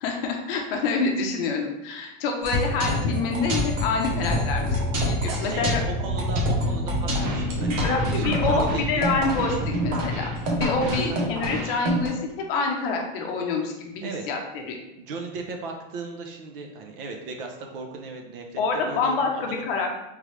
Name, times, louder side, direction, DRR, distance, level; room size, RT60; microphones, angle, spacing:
voice 1, 0.0-5.8 7.8-14.8 18.6-19.9, left 4 dB, 50° left, 2 dB, 0.7 m, -27 dB
sound 1, 2.4-12.1, equal, 85° right, 1.2 m, -27 dB
sound 2, 2.5-8.7, left 11 dB, 85° left, 0.5 m, -37 dB
sound 3, 3.6-11.0, right 1 dB, ahead, 0.8 m, -31 dB
voice 2, 5.2-9.1 10.9-11.2 14.0-14.2 15.0-19.6, right 3 dB, 45° right, 3 dB, 0.6 m, -36 dB
3.7 x 3.1 x 3.1 m, 0.92 s
supercardioid pair, 170°, 37 cm